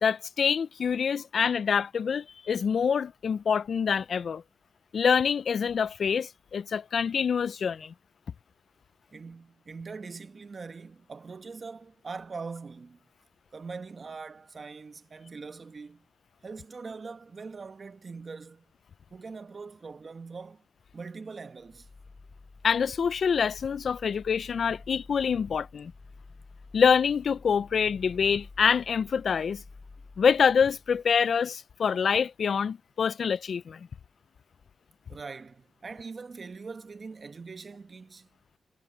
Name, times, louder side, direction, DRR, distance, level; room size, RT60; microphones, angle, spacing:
voice 1, 0.0-4.4 4.9-7.9 22.6-25.9 26.7-29.6 30.2-33.8, left 6 dB, 70° left, 0.5 m, -26 dB
voice 2, 9.1-13.0 13.5-16.0 16.4-18.6 19.1-20.6 20.9-21.9 35.1-38.3, right 4 dB, 50° right, 1.2 m, -42 dB
sound 1, 21.6-31.2, left 3 dB, 40° left, 4.1 m, -50 dB
cardioid pair, 50°, 0 cm